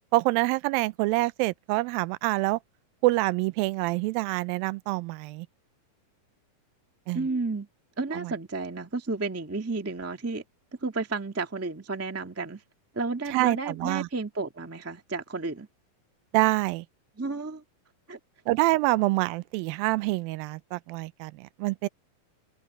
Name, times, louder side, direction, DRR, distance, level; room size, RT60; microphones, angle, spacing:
voice 1, 0.1-2.6 3.0-5.5 7.1-7.3 8.1-8.3 13.3-14.1 16.3-16.9 18.5-21.9, right 20 dB, 85° right, 2.3 m, -26 dB
voice 2, 7.1-7.7 8.0-10.4 10.8-12.6 12.9-15.7 17.2-17.6 18.1-18.2, right 3 dB, 20° right, 0.3 m, -32 dB
omnidirectional pair, 4.2 m